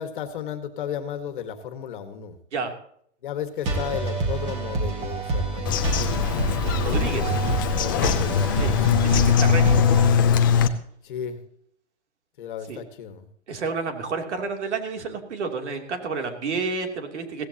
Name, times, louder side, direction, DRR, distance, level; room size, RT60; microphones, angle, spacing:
voice 1, 0.0-2.4 3.2-6.3 6.6-8.9 11.0-11.4 12.4-13.3, left 8 dB, 45° left, 9 dB, 1.7 m, -34 dB
sound 1, 3.6-10.1, right 3 dB, 20° right, 1.7 m, -27 dB
Bird vocalization bird call bird song, 5.7-10.7, left 7 dB, 20° left, 0.5 m, -21 dB
voice 2, 6.8-7.4 8.6-8.7 9.0-10.0 12.7-12.8 13.5-17.4, right 4 dB, 70° right, 4 dB, 3.1 m, -30 dB
17.0 x 15.0 x 2.9 m, 0.65 s
hypercardioid pair, 165°, 36 cm